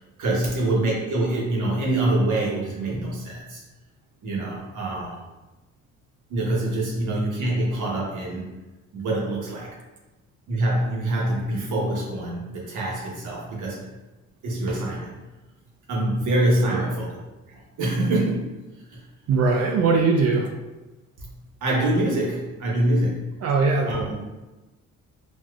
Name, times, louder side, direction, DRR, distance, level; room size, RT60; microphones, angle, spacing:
voice 1, 0.2-3.6 4.2-5.2 6.3-8.5 8.9-9.7 10.5-13.9 14.4-15.1 15.9-17.2 17.5-18.5 18.9-19.0 21.2-21.3 21.6-23.2 23.9-24.1, right 1 dB, 80° right, -3 dB, 1.1 m, -25 dB
voice 2, 19.3-20.5 23.4-23.9, right 4 dB, 55° right, 2 dB, 0.4 m, -20 dB
4.1 x 2.3 x 2.4 m, 1.1 s
cardioid pair, 90°, 30 cm